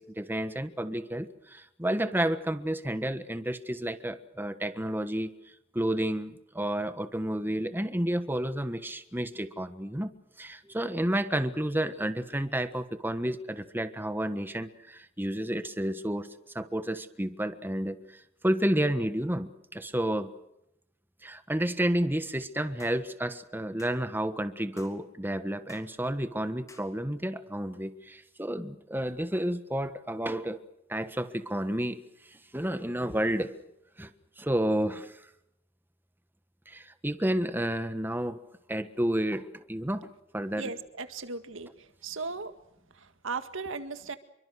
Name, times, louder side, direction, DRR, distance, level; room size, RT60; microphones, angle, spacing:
voice 1, 0.0-5.3 5.7-10.1 10.4-20.3 21.2-30.6 30.9-32.0 32.3-33.5 34.0-34.1 34.4-35.3 36.7-38.4 38.7-40.7, right 1 dB, 10° right, 10 dB, 1.4 m, -31 dB
sound 1, 22.8-23.0 23.8-24.0 24.8-25.0 25.7-25.9 26.7-26.9, left 3 dB, 15° left, 3.2 m, -53 dB
voice 2, 40.6-42.5 42.9-44.2, right 4 dB, 85° right, 9 dB, 1.9 m, -37 dB
28.0 x 24.0 x 6.5 m, 0.81 s
head